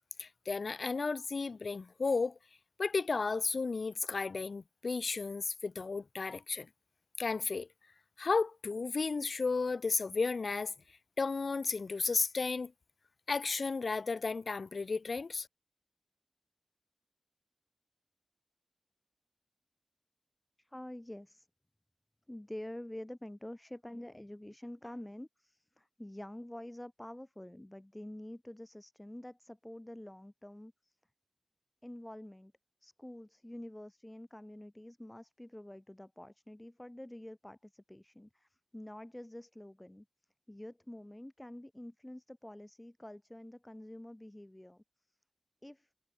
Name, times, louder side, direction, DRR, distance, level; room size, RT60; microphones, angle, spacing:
voice 1, 0.2-2.4 2.8-6.7 7.2-7.7 8.2-10.7 11.2-12.7 13.3-15.5, left 4 dB, 85° left, 1.1 m, -33 dB
voice 2, 20.6-21.5 22.3-31.0 31.8-32.5 32.8-40.1 40.5-44.8 45.6-45.9, left 1 dB, 15° left, 6.9 m, -47 dB
wide cardioid pair, 60°, 0 cm